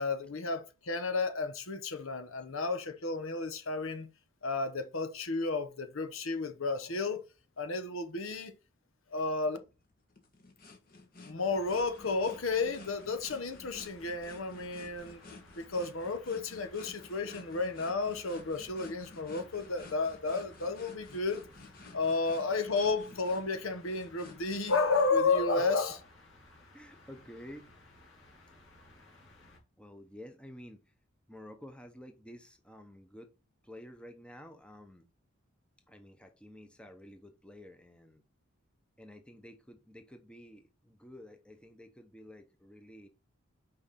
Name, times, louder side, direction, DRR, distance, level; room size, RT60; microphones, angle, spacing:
voice 1, 0.0-4.1 4.4-7.2 7.6-8.5 9.1-9.6 11.2-15.2 15.6-21.4 21.9-26.0, left 3 dB, 80° left, 1.0 m, -32 dB
sound 1, 9.4-25.1, left 3 dB, 45° left, 1.3 m, -53 dB
sound 2, 11.5-29.6, left 1 dB, 60° left, 2.6 m, -58 dB
voice 2, 26.7-27.7 29.8-30.8 31.3-33.3 33.6-35.0 35.9-38.2 39.0-43.1, equal, 5° left, 0.7 m, -51 dB
5.6 x 4.9 x 4.2 m
head